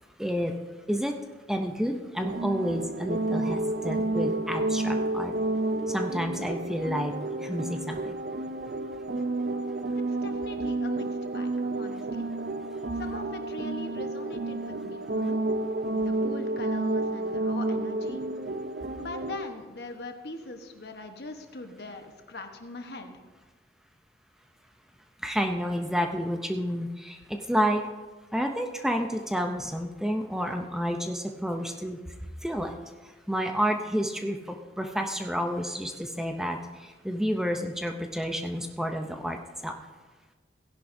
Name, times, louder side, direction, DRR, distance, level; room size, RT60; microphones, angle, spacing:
voice 1, 0.2-0.6 0.9-1.1 1.5-5.3 5.9-8.1 25.2-27.8 28.3-32.0 32.4-32.8 33.0-39.8, equal, 5° right, 4 dB, 0.6 m, -30 dB
sound 1, 2.2-19.4, right 2 dB, 60° right, 0.6 m, -30 dB
voice 2, 9.9-12.3 13.0-15.4 15.9-18.2 19.0-23.2, left 2 dB, 65° left, 5 dB, 1.1 m, -41 dB
16.5 x 10.5 x 2.7 m, 1.3 s
head